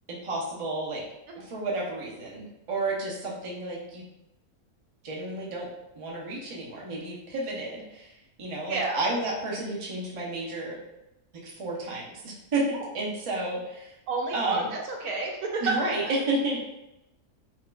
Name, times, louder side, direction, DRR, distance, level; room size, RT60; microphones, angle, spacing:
voice 1, 0.1-1.0 1.4-4.1 5.0-5.7 6.0-10.8 11.4-13.9 14.3-14.7 15.6-16.6, right 2 dB, 45° right, -4 dB, 0.4 m, -31 dB
voice 2, 8.7-9.1 14.1-15.9, right 3 dB, 80° right, -1 dB, 1.2 m, -29 dB
4.1 x 2.4 x 2.2 m, 0.91 s
omnidirectional pair, 1.6 m